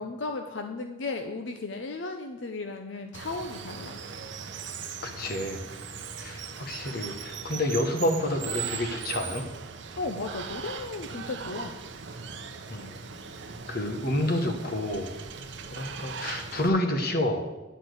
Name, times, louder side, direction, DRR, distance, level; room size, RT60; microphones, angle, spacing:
voice 1, 0.0-4.0 10.0-11.7, left 3 dB, 65° left, 5 dB, 0.6 m, -35 dB
Water, 3.1-16.7, right 6 dB, 65° right, 0.7 m, -39 dB
voice 2, 5.0-5.6 6.2-9.4 12.7-12.9 13.7-15.2 15.7-17.4, left 1 dB, 50° left, 4 dB, 1.2 m, -29 dB
10.0 x 4.4 x 7.9 m, 1.1 s
head